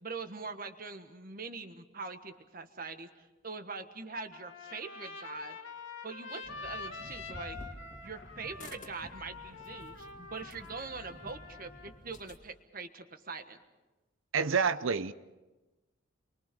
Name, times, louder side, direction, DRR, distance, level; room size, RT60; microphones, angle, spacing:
voice 1, 0.0-5.6 6.0-7.6 8.0-13.6, right 4 dB, 45° right, 1.4 m, -43 dB
Trumpet, 4.3-12.0, left 4 dB, 70° left, 2.0 m, -46 dB
sound 1, 6.4-12.5, left 1 dB, 40° left, 1.9 m, -50 dB
voice 2, 14.3-15.1, right 5 dB, 75° right, 0.7 m, -28 dB
29.5 x 23.5 x 5.3 m
head